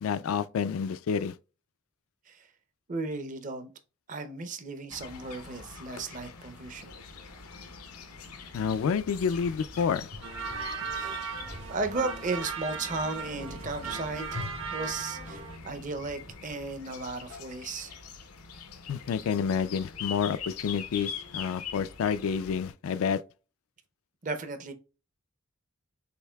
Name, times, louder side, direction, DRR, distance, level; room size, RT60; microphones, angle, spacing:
voice 1, 0.0-1.3 8.5-10.1 18.9-23.2, left 6 dB, 70° left, 0.3 m, -29 dB
voice 2, 2.9-3.7 4.1-6.9 10.9-18.0 24.2-24.7, right 3 dB, 35° right, 0.5 m, -35 dB
sound 1, 4.9-22.7, left 6 dB, 90° left, 0.7 m, -44 dB
sound 2, 6.8-16.3, left 1 dB, 85° right, 1.4 m, -48 dB
sound 3, 10.2-15.6, right 5 dB, 65° right, 1.0 m, -37 dB
6.6 x 2.7 x 2.2 m
head